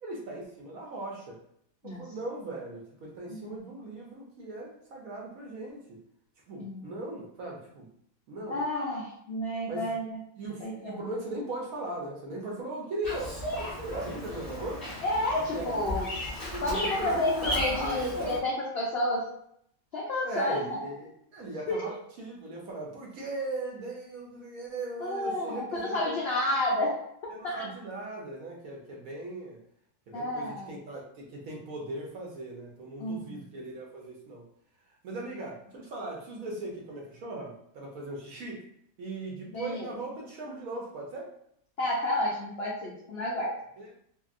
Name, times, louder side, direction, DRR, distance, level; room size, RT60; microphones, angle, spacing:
voice 1, 0.0-1.4 1.8-6.0 6.5-7.9 8.3-8.6 9.7-9.9 10.4-14.8 15.5-16.0 16.5-18.3 20.2-21.9 22.2-26.2 27.3-29.6 30.1-34.4 35.0-38.6 39.0-41.3 43.8-43.9, right 2 dB, 65° right, -2 dB, 0.9 m, -38 dB
voice 2, 8.5-10.2 10.6-11.0 15.0-16.1 16.6-19.2 19.9-20.8 21.7-21.9 25.0-27.0 27.4-27.7 30.1-30.8 33.0-33.5 39.5-39.9 41.8-43.5, left 1 dB, 80° left, -5 dB, 0.5 m, -30 dB
Bird vocalization bird call bird song, 13.0-18.4, left 1 dB, 15° left, 0.9 m, -35 dB
2.7 x 2.6 x 2.4 m, 0.71 s
omnidirectional pair, 1.8 m